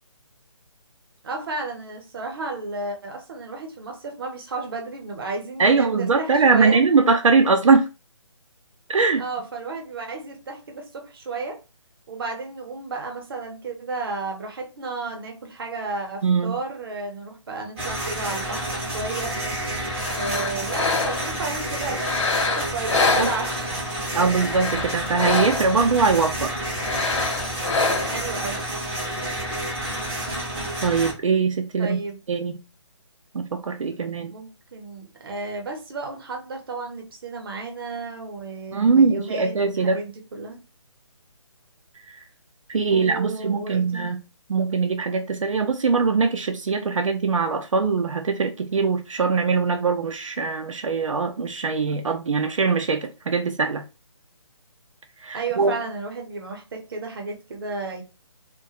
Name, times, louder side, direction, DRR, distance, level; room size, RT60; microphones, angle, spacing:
voice 1, 1.2-6.8 9.2-11.6 12.1-19.4 20.1-23.7 28.1-28.6 31.8-32.2 34.3-40.6 42.9-44.1 55.3-58.0, right 3 dB, 45° right, 0.7 m, -33 dB
voice 2, 5.6-7.9 8.9-9.2 16.2-16.5 23.2-23.3 24.1-26.5 30.8-32.0 32.3-32.6 33.3-34.3 38.7-40.0 42.7-44.2 44.5-53.8 55.2-55.7, right 4 dB, 80° right, 0.4 m, -21 dB
sound 1, 17.8-31.1, right 1 dB, 5° right, 0.4 m, -29 dB
sound 2, 19.9-21.4 22.0-23.8 24.4-25.9 26.7-28.3, left 4 dB, 70° left, 0.7 m, -26 dB
2.3 x 2.1 x 2.7 m
figure-of-eight pair, 155°, 16 cm